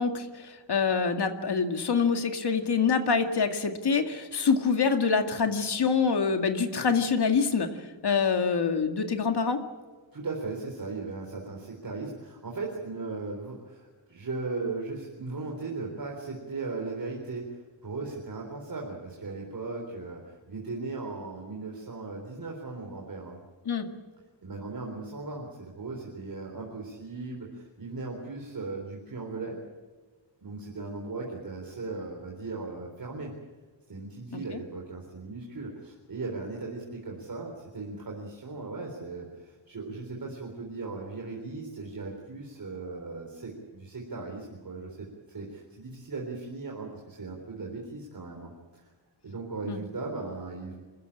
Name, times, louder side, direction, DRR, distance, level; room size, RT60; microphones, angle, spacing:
voice 1, 0.0-7.7 8.0-9.6 23.7-23.9 49.7-49.8, left 5 dB, 65° left, 6 dB, 2.2 m, -25 dB
voice 2, 10.1-23.4 24.4-29.6 30.4-33.3 33.9-48.9 49.2-50.7, right 3 dB, 50° right, 0 dB, 4.0 m, -37 dB
26.5 x 15.0 x 8.7 m, 1.4 s
wide cardioid pair, 130°, 43 cm